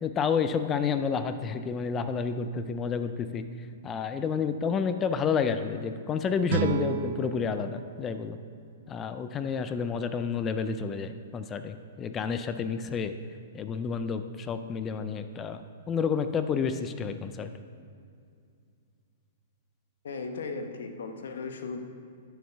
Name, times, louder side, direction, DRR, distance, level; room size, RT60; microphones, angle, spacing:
voice 1, 0.0-3.4 3.8-8.4 8.9-13.1 13.5-15.6 15.9-17.5, left 6 dB, 20° left, 10 dB, 0.4 m, -30 dB
sound 1, 6.5-9.5, right 8 dB, 60° right, 0.5 m, -34 dB
voice 2, 20.0-21.8, left 4 dB, 80° left, 6 dB, 1.1 m, -36 dB
9.2 x 7.0 x 5.7 m, 2.4 s
hypercardioid pair, 150°, 0 cm